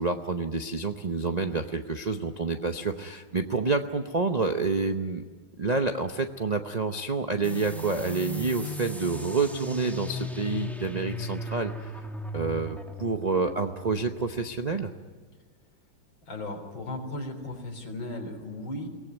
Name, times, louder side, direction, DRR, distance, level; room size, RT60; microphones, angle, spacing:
voice 1, 0.0-5.2 5.6-11.9 12.3-14.9, right 4 dB, 50° right, 6 dB, 0.4 m, -28 dB
sound 1, 7.4-14.7, equal, ahead, 1.6 m, -37 dB
voice 2, 16.3-18.9, left 1 dB, 85° left, 4 dB, 4.4 m, -36 dB
23.0 x 18.5 x 9.2 m, 1.5 s
omnidirectional pair, 2.1 m